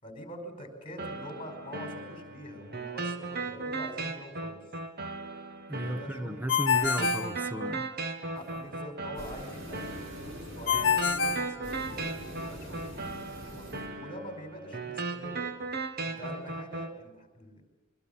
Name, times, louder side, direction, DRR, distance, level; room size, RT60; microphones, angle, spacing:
voice 1, 0.0-4.6 5.8-6.5 8.3-15.5 16.0-17.6, equal, 25° left, 5.4 m, -45 dB
sound 1, 1.0-17.0, right 3 dB, 50° right, 1.5 m, -37 dB
voice 2, 5.7-7.9, right 1 dB, 10° right, 0.9 m, -34 dB
Ringtone, 6.5-8.1 10.7-12.3, left 7 dB, 65° left, 1.3 m, -28 dB
sound 2, 8.3-8.7 9.0-13.9, equal, 70° right, 5.7 m, -44 dB
24.5 x 24.5 x 7.1 m
head